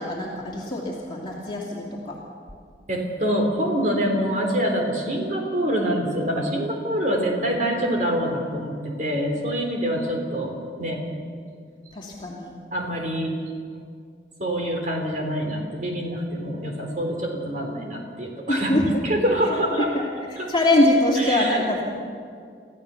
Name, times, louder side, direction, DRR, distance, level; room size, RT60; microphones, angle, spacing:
voice 1, 0.0-2.2 11.9-12.5 18.5-19.0 19.8-21.8, left 1 dB, 30° left, -4 dB, 2.7 m, -23 dB
voice 2, 2.9-11.0 12.7-13.3 14.4-19.9 20.4-20.5 21.2-21.6, equal, 45° right, 2 dB, 3.6 m, -25 dB
25.5 x 15.5 x 7.0 m, 2.2 s
head